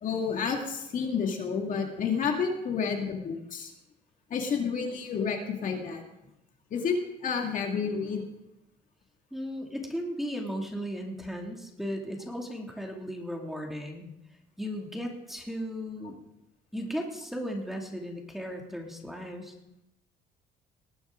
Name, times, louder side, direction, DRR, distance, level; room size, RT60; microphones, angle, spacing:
voice 1, 0.0-3.7 4.3-6.0 6.7-7.0 7.2-8.3, left 6 dB, 50° left, 2 dB, 2.3 m, -30 dB
voice 2, 9.3-14.1 14.6-16.1 16.7-19.5, equal, ahead, 1 dB, 2.5 m, -36 dB
19.5 x 10.0 x 3.9 m, 0.88 s
cardioid pair, 110°, 17 cm